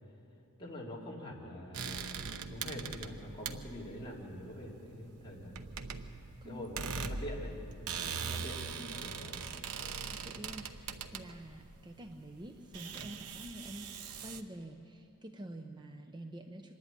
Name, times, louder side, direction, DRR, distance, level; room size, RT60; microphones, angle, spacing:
voice 1, 0.6-5.6 6.4-7.5 7.9-9.4 9.8-9.9, equal, 25° left, -3 dB, 3.1 m, -45 dB
sound 1, 1.7-14.4, right 5 dB, 85° right, 0.9 m, -42 dB
voice 2, 10.1-16.7, right 1 dB, 20° right, 5 dB, 0.7 m, -47 dB
25.0 x 11.0 x 9.5 m, 2.9 s
head